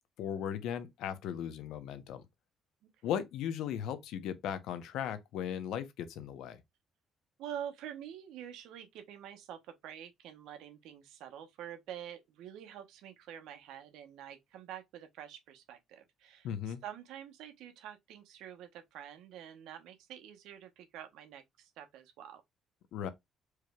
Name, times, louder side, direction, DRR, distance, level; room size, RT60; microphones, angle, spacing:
voice 1, 0.2-2.2 3.0-6.6 16.4-16.8 22.9-23.1, left 9 dB, 80° left, 0.7 m, -37 dB
voice 2, 7.4-22.4, right 10 dB, 85° right, 1.0 m, -47 dB
4.7 x 3.0 x 2.3 m
cardioid pair, 125°, 0 cm